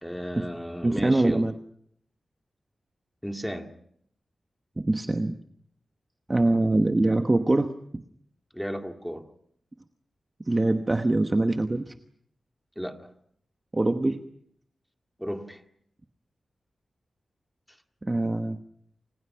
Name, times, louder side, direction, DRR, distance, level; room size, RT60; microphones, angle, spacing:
voice 1, 0.0-1.5 3.2-3.7 8.5-9.3 12.8-13.1 15.2-15.6, equal, ahead, 2.1 m, -34 dB
voice 2, 0.8-1.5 4.8-5.4 6.3-7.7 10.5-11.9 13.7-14.2 18.0-18.6, right 2 dB, 20° right, 1.1 m, -23 dB
29.5 x 26.5 x 5.9 m
wide cardioid pair, 175°, 0 cm